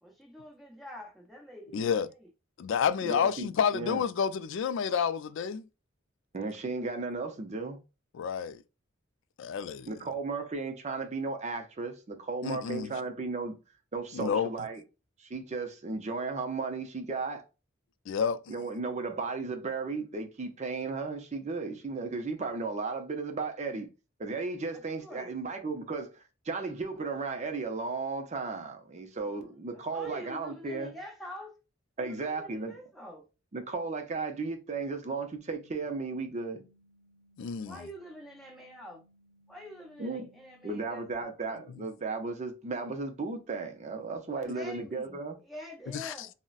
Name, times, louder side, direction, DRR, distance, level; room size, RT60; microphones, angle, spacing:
voice 1, 0.0-2.3 24.7-25.3 29.1-31.5 32.0-33.2 37.6-39.0 39.5-41.3 44.3-46.3, left 1 dB, ahead, 1.0 m, -46 dB
voice 2, 1.7-2.1 2.6-5.7 8.1-8.6 9.4-9.9 12.4-12.9 14.1-14.5 18.1-18.4 37.4-37.8 45.9-46.1, left 7 dB, 65° left, 0.3 m, -29 dB
voice 3, 3.0-3.5 3.7-4.0 6.3-7.8 9.9-13.5 13.9-14.8 15.2-17.4 18.5-23.9 24.2-30.9 32.0-32.7 33.5-36.6 40.0-40.3 40.6-45.4, right 4 dB, 35° right, 0.5 m, -35 dB
sound 1, 35.4-41.2, equal, 70° right, 0.7 m, -65 dB
3.8 x 2.1 x 2.3 m
head